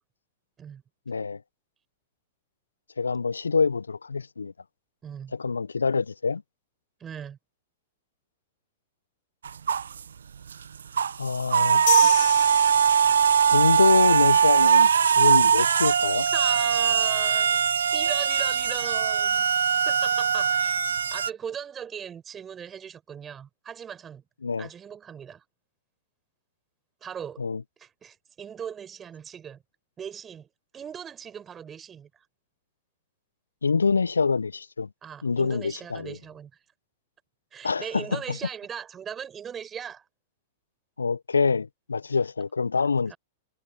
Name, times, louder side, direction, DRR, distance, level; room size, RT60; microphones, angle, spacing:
voice 1, 1.1-1.4 3.0-4.5 5.4-6.4 11.2-12.1 13.5-16.3 24.4-24.7 27.4-27.6 33.6-34.9 35.2-36.1 37.6-38.4 41.0-43.1, left 4 dB, 80° left, 1.0 m, -25 dB
voice 2, 5.0-5.4 7.0-7.4 16.3-17.6 17.9-19.5 19.8-20.8 21.1-24.2 24.6-25.4 27.0-27.5 27.8-29.6 30.0-32.1 35.0-36.5 37.5-40.1 43.1-43.2, right 8 dB, 20° right, 7.5 m, -39 dB
sound 1, 9.4-10.0 10.5-10.6 11.0-21.3, right 7 dB, 70° right, 1.1 m, -21 dB
sound 2, 11.9-13.4, left 17 dB, 55° left, 2.2 m, -31 dB
figure-of-eight pair, 100°, 0 cm